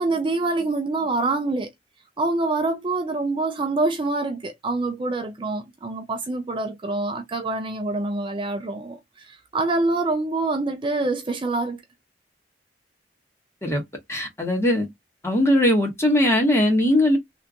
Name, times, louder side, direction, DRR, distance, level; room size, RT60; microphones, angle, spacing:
voice 1, 0.0-1.7 2.2-11.8, right 2 dB, 30° right, 0.4 m, -25 dB
voice 2, 14.1-14.9 15.2-17.2, left 1 dB, 15° left, 1.4 m, -20 dB
3.3 x 2.9 x 2.4 m
head